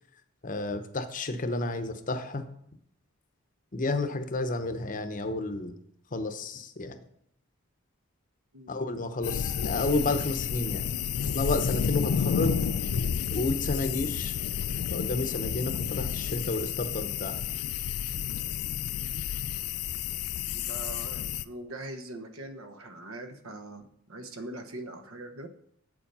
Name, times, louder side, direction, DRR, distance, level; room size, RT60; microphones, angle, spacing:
voice 1, 0.4-2.4 3.7-5.7 6.1-7.0 8.7-10.8 11.3-12.6 13.3-14.4 14.9-17.4, left 2 dB, 35° left, 8 dB, 0.8 m, -31 dB
sound 1, 9.2-21.4, left 7 dB, 90° left, 0.4 m, -31 dB
voice 2, 20.5-25.5, right 2 dB, 70° right, 7 dB, 1.0 m, -42 dB
8.1 x 7.2 x 5.4 m, 0.72 s
head